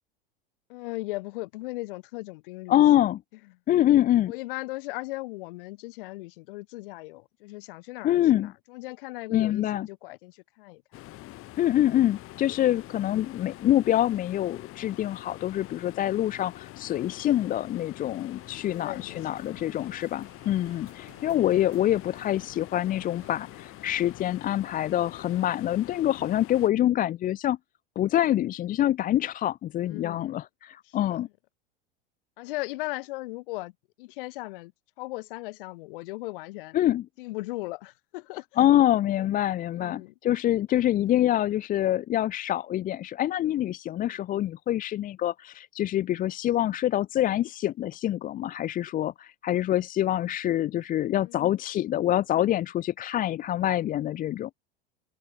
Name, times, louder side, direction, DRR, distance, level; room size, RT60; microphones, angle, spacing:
voice 1, 0.7-2.7 4.3-10.8 11.1-11.2 12.9-13.4 18.7-19.4 21.1-21.6 29.8-30.3 30.8-31.2 32.4-33.7 34.0-34.7 35.0-36.8 37.2-38.5 39.8-40.1 44.0-44.2 51.2-51.5, left 21 dB, 65° left, 4.5 m, -38 dB
voice 2, 2.7-3.2 3.7-4.3 8.0-8.5 9.3-9.9 11.6-27.6 28.0-31.3 36.7-37.1 38.6-54.5, left 12 dB, 30° left, 0.6 m, -25 dB
sound 1, 10.9-26.7, left 17 dB, 45° left, 5.2 m, -45 dB
sound 2, 18.4-24.2, right 28 dB, 55° right, 5.6 m, -59 dB
hypercardioid pair, 85°, 29 cm